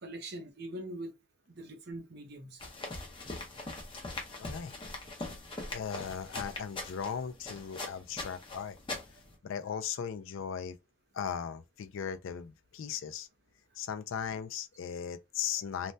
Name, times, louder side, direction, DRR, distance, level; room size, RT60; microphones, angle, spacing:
voice 1, 0.0-1.1 1.5-2.6, right 1 dB, 50° right, 0.7 m, -42 dB
sound 1, 2.6-9.3, left 2 dB, 25° left, 0.7 m, -41 dB
voice 2, 4.4-4.7 5.7-8.8 9.4-10.8 11.1-13.3 13.8-15.9, left 7 dB, 65° left, 0.4 m, -37 dB
3.2 x 2.2 x 2.6 m
head